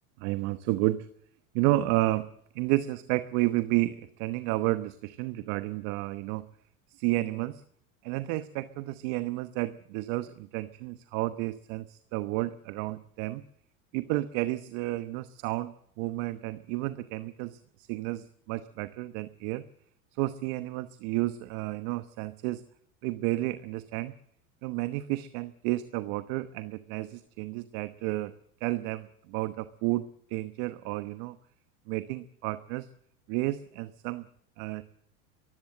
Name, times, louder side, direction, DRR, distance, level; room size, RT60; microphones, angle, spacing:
voice 1, 0.2-1.1 1.5-2.3 2.5-6.4 6.9-7.6 8.0-13.4 13.9-19.6 20.2-22.6 23.0-24.1 24.6-28.3 28.6-31.4 31.9-32.9 33.3-34.3 34.6-34.8, right 17 dB, 60° right, 12 dB, 1.1 m, -31 dB
22.5 x 15.5 x 7.7 m, 0.69 s
supercardioid pair, 105°, 42 cm